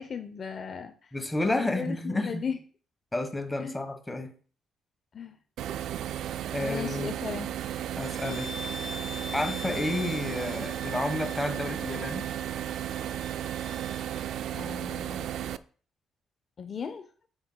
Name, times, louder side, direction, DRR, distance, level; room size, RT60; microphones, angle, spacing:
voice 1, 0.0-0.9 1.5-2.6 3.6-3.7 5.1-5.4 6.6-7.5 14.5-15.3 16.6-17.1, left 6 dB, 45° left, 7 dB, 0.6 m, -36 dB
voice 2, 1.1-2.4 3.1-4.3 6.5-7.1 8.0-8.5 9.3-12.3, left 2 dB, 10° left, 6 dB, 1.3 m, -31 dB
sound 1, 5.6-15.6, right 11 dB, 80° right, 0.3 m, -34 dB
sound 2, 8.0-14.4, left 1 dB, 10° right, 3.0 m, -43 dB
8.9 x 6.9 x 2.3 m, 0.43 s
cardioid pair, 90°, 0 cm